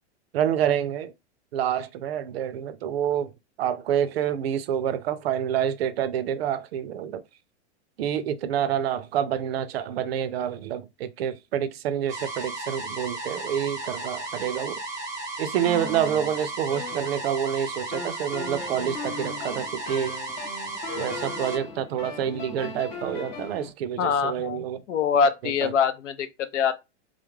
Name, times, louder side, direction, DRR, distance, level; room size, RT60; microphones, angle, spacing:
voice 1, 0.3-1.1 1.5-3.3 3.6-7.2 8.0-14.8 15.4-20.2 20.9-24.8 25.4-25.7, right 9 dB, 60° right, 0.4 m, -28 dB
sound 1, 12.1-21.6, right 2 dB, 10° right, 0.6 m, -35 dB
sound 2, 15.6-17.5 17.9-23.7, left 3 dB, 40° left, 0.7 m, -38 dB
voice 2, 24.0-26.7, left 6 dB, 90° left, 0.6 m, -24 dB
2.3 x 2.0 x 3.0 m
hypercardioid pair, 155°, 35 cm